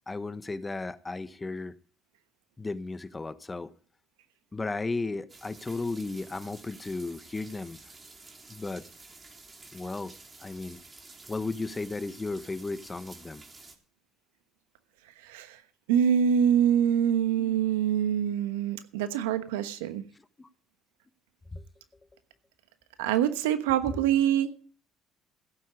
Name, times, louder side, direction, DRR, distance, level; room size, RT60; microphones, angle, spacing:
voice 1, 0.1-1.8 2.6-3.7 4.5-7.8 8.5-8.9 9.7-10.1 10.4-10.8 11.3-13.4 17.4-17.6 20.4-20.5 21.5-21.7, left 3 dB, 25° left, 1.1 m, -35 dB
sound 1, 5.3-13.8, right 3 dB, 30° right, 3.4 m, -51 dB
voice 2, 15.2-15.6 15.9-20.0 23.0-24.5, right 9 dB, 85° right, 1.1 m, -25 dB
16.5 x 9.2 x 5.0 m
hypercardioid pair, 55°, 0 cm